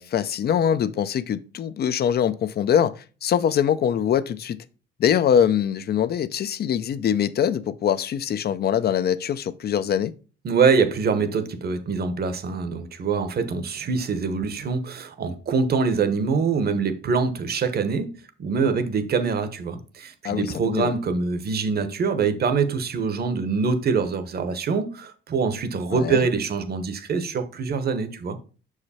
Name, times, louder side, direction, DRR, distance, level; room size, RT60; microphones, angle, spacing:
voice 1, 0.0-4.6 5.0-10.1 20.2-20.9 25.9-26.3, left 9 dB, 55° left, 0.5 m, -23 dB
voice 2, 10.4-18.1 18.4-28.4, right 5 dB, 50° right, 1.0 m, -24 dB
6.2 x 4.9 x 4.2 m
cardioid pair, 90°, 20 cm